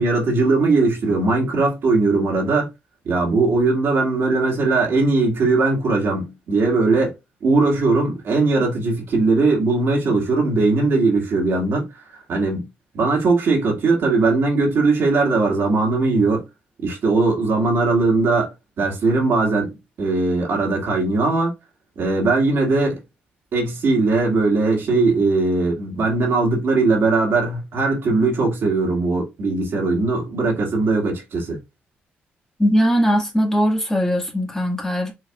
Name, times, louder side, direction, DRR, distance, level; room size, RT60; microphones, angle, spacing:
voice 1, 0.0-2.7 3.0-7.1 7.4-12.0 12.3-12.7 12.9-16.4 16.8-21.5 22.0-23.0 23.5-31.6, right 3 dB, 70° right, 1.9 m, -19 dB
voice 2, 32.6-35.1, equal, 15° left, 1.7 m, -19 dB
4.7 x 3.1 x 2.3 m
cardioid pair, 65°, 4 cm